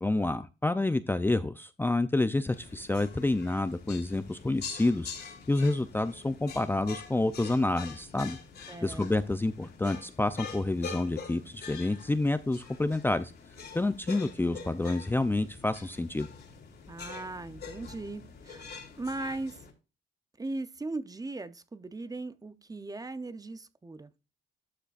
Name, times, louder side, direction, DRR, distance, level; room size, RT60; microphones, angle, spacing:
voice 1, 0.0-8.4 8.8-13.3 13.7-16.3, left 2 dB, 10° left, 0.5 m, -28 dB
sound 1, 2.5-19.7, left 6 dB, 55° left, 2.9 m, -45 dB
voice 2, 8.7-9.4 16.9-18.7 19.0-19.6 20.4-24.1, right 2 dB, 20° right, 0.8 m, -38 dB
12.0 x 6.6 x 2.5 m
cardioid pair, 90°, 20 cm